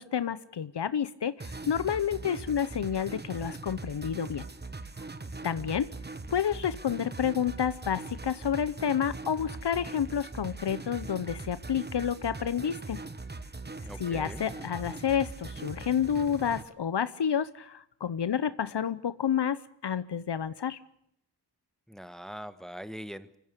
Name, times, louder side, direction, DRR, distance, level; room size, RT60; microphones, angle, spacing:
voice 1, 0.0-4.5 5.4-5.9 6.3-13.0 14.0-20.8, left 8 dB, 70° left, 15 dB, 0.8 m, -30 dB
sound 1, 1.4-16.6, right 3 dB, 25° right, 1.2 m, -41 dB
voice 2, 13.8-14.4 21.9-23.4, equal, ahead, 12 dB, 1.2 m, -42 dB
25.0 x 15.0 x 8.2 m, 0.77 s
wide cardioid pair, 75°, 42 cm